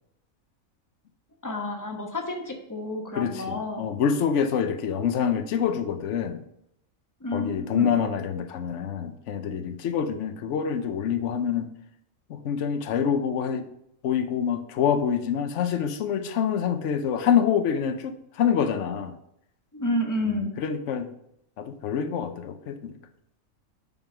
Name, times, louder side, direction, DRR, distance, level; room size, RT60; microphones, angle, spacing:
voice 1, 1.4-3.8 7.2-8.0 19.7-20.5, left 1 dB, 15° left, 2 dB, 0.9 m, -30 dB
voice 2, 3.1-6.4 7.3-11.7 12.3-13.7 14.0-19.1 20.3-21.1 21.6-23.0, left 7 dB, 60° left, 8 dB, 1.0 m, -26 dB
5.5 x 5.3 x 5.9 m, 0.77 s
omnidirectional pair, 1.5 m